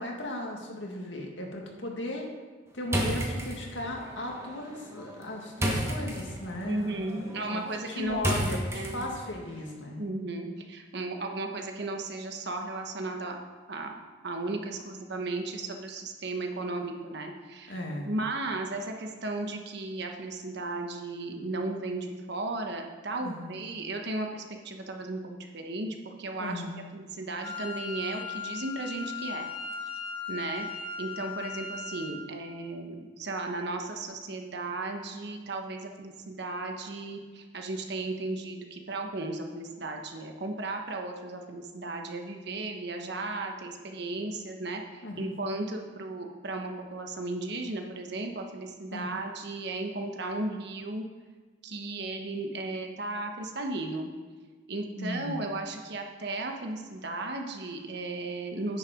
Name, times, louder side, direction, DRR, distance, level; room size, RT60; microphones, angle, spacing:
voice 1, 0.0-2.3 2.7-7.6 7.9-10.1 17.7-18.1 23.2-23.6 26.4-26.8 45.0-45.3 48.9-49.2 55.0-55.4, left 1 dB, 80° left, 0 dB, 1.8 m, -36 dB
sound 1, 2.9-9.4, equal, 15° right, 1.3 m, -33 dB
voice 2, 6.7-9.1 10.0-13.4 13.7-14.0 14.2-26.6 26.9-29.5 30.3-30.7 31.0-51.1 51.6-54.1 54.7-58.8, right 2 dB, 65° right, 3 dB, 1.2 m, -35 dB
Wind instrument woodwind instrument, 27.4-32.2, left 5 dB, 55° left, 2.5 m, -38 dB
9.8 x 6.9 x 5.1 m, 1.4 s
head